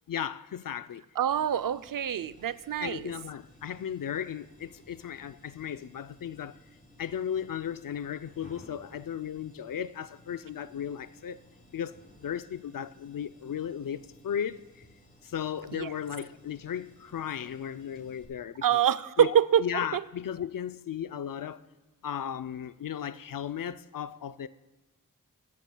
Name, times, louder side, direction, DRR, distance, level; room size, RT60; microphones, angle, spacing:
voice 1, 0.1-1.0 2.8-6.6 7.0-11.4 11.7-14.8 15.2-18.8 19.2-21.7 22.0-24.5, left 9 dB, 80° left, 0.5 m, -36 dB
voice 2, 1.2-3.1 15.7-15.9 18.6-19.7 19.9-20.0, right 9 dB, 80° right, 0.5 m, -25 dB
sound 1, 1.3-18.2, left 1 dB, 25° left, 4.0 m, -58 dB
24.5 x 11.5 x 2.3 m
cardioid pair, 45°, 33 cm